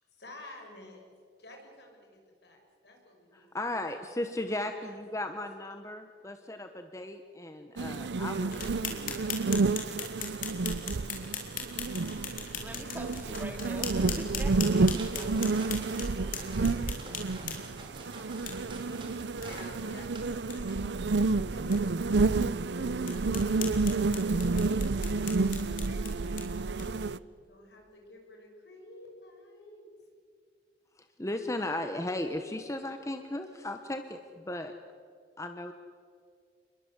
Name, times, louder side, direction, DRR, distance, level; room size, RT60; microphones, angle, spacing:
voice 1, 0.1-1.0 1.4-3.9 4.4-5.0 17.8-18.7 19.1-20.9 21.1-22.4 23.0-25.6 27.3-29.8, left 1 dB, 70° left, 1 dB, 6.9 m, -52 dB
voice 2, 3.3-9.2 31.2-34.7 35.4-35.7, left 1 dB, 15° left, 6 dB, 1.1 m, -36 dB
sound 1, 7.8-27.2, right 3 dB, 80° right, 0.6 m, -30 dB
sound 2, 8.5-17.8 18.5-18.6 18.9-19.0 19.4-19.5 19.9-20.0 20.3-20.6 21.1-21.2 21.7-21.8 22.3-22.4 23.0-27.1, left 7 dB, 50° left, 4.2 m, -40 dB
voice 3, 12.6-16.9, equal, 10° right, 3 dB, 2.8 m, -45 dB
sound 3, 14.6-21.4, right 2 dB, 30° right, 3.6 m, -49 dB
29.5 x 22.0 x 8.2 m, 2.3 s
head